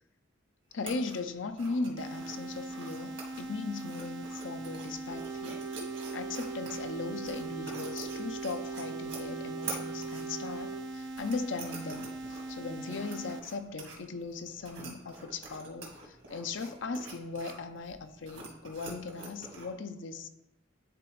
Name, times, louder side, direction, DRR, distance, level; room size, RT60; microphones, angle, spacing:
voice 1, 0.7-5.6 6.1-20.3, left 3 dB, 75° left, 9 dB, 0.6 m, -38 dB
sound 1, 0.7-19.7, right 3 dB, 85° right, 1.9 m, -47 dB
sound 2, 2.0-13.4, right 2 dB, 65° right, 0.4 m, -41 dB
sound 3, 5.1-10.8, right 7 dB, 20° right, 0.6 m, -42 dB
10.0 x 3.8 x 3.1 m, 0.90 s
head